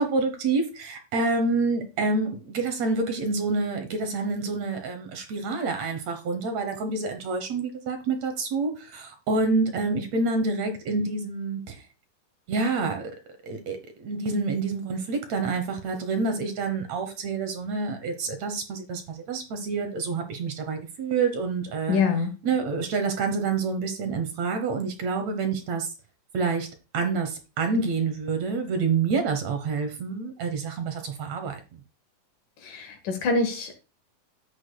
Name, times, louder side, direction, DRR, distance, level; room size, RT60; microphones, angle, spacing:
voice 1, 0.0-11.8 12.5-13.1 13.4-22.0 22.4-25.9 26.3-26.7 26.9-31.8, right 4 dB, 60° right, 2.0 m, -27 dB
voice 2, 21.9-22.3 32.6-33.8, left 4 dB, 70° left, 2.8 m, -25 dB
11.5 x 8.5 x 2.3 m
omnidirectional pair, 4.1 m